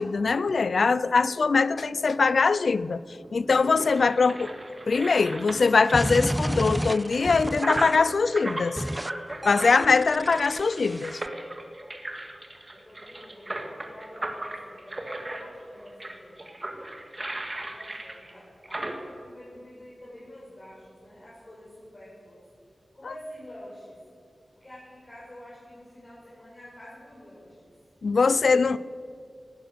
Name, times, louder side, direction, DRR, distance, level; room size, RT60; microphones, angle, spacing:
voice 1, 0.0-3.0 3.3-4.4 4.9-8.8 9.4-11.2 28.0-28.8, left 4 dB, 75° left, 17 dB, 0.4 m, -22 dB
voice 2, 1.8-2.1 12.7-16.5 17.5-22.4 22.9-24.0 24.5-27.7, equal, 35° left, -7 dB, 5.3 m, -47 dB
sound 1, 3.2-18.9, right 1 dB, 30° right, 2.1 m, -36 dB
sound 2, 5.9-8.1 8.8-9.1 9.4-11.3, equal, 5° right, 0.3 m, -31 dB
19.0 x 11.0 x 6.8 m, 2.4 s
wide cardioid pair, 65°, 0 cm